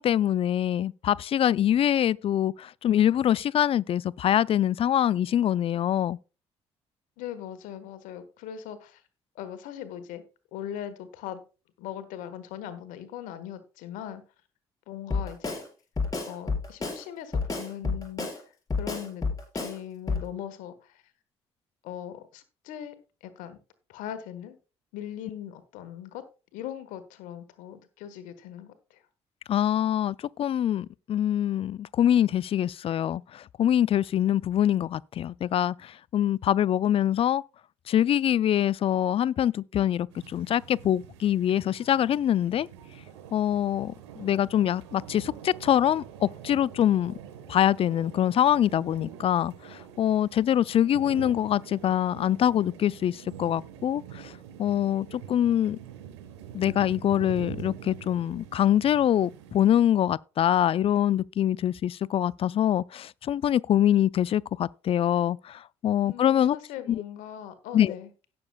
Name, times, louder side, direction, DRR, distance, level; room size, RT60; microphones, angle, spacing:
voice 1, 0.0-6.2 29.5-37.4 37.9-42.7 43.3-47.1 47.5-54.3 54.6-55.8 56.5-66.6 66.9-67.0 67.7-67.9, left 10 dB, 45° left, 0.4 m, -24 dB
voice 2, 7.2-9.0 9.3-10.2 10.5-11.4 11.8-14.2 14.9-15.6 16.3-18.4 18.7-19.2 19.5-21.0 21.8-22.9 23.2-23.6 23.9-24.6 24.9-26.2 26.5-29.0 66.0-68.1, left 10 dB, 70° left, 1.4 m, -40 dB
Drum kit, 15.1-15.6 16.0-17.0 17.3-18.4 18.7-19.7 20.1-20.2, left 4 dB, 25° left, 4.4 m, -29 dB
sound 1, 40.1-59.8, right 9 dB, 80° right, 1.3 m, -45 dB
17.5 x 6.9 x 2.3 m
hypercardioid pair, 50°, 14 cm